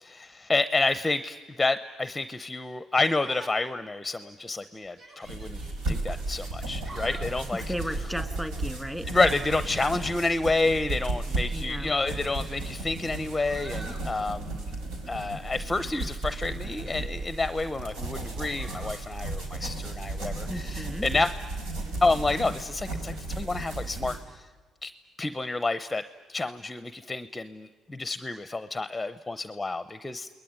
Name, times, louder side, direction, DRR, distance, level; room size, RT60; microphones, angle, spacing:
voice 1, 0.0-5.6 5.9-7.6 9.1-14.6 15.1-21.3 22.0-24.2 24.8-24.9 25.2-26.0 26.3-30.3, left 3 dB, 15° left, 12 dB, 0.7 m, -29 dB
Yell, 3.1-3.8 4.2-4.3 4.8-5.7 6.6-7.4 9.2-9.6 10.8-10.9 11.7-12.6 13.1-14.1 16.7-17.4 18.6-19.0, right 1 dB, 50° right, 7.2 m, -47 dB
sound 1, 5.2-24.2, right 2 dB, 85° right, 4.7 m, -34 dB
voice 2, 7.5-9.1 11.5-11.9 20.5-21.1, equal, 5° right, 8 dB, 2.1 m, -35 dB
29.5 x 20.5 x 9.5 m, 1.4 s
cardioid pair, 95°, 0 cm